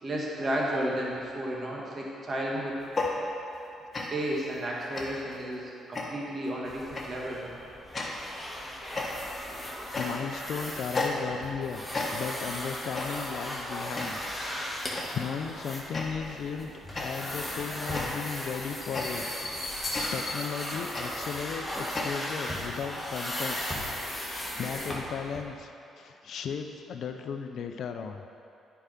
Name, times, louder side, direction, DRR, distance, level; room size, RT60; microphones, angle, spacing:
voice 1, 0.0-2.8 4.1-7.6, right 1 dB, 40° right, -3 dB, 1.6 m, -32 dB
sound 1, 2.8-3.7 3.9-4.4 4.9-5.4 5.9-6.4 6.9-7.3 7.9-8.4 8.9-9.5 9.9-10.4 10.9-11.6 11.9-12.5 12.9-13.4 13.9-14.4 15.0-15.3 15.9-16.4 16.9-22.1, left 2 dB, 30° left, 1.4 m, -35 dB
sound 2, 6.6-25.4, left 1 dB, 10° left, 2.1 m, -37 dB
voice 2, 10.0-11.8 12.1-14.2 14.7-19.2 19.7-23.7 24.2-25.7 26.0-28.2, left 6 dB, 65° left, 6 dB, 0.5 m, -36 dB
8.8 x 4.8 x 5.7 m, 2.7 s
supercardioid pair, 65°, 0 cm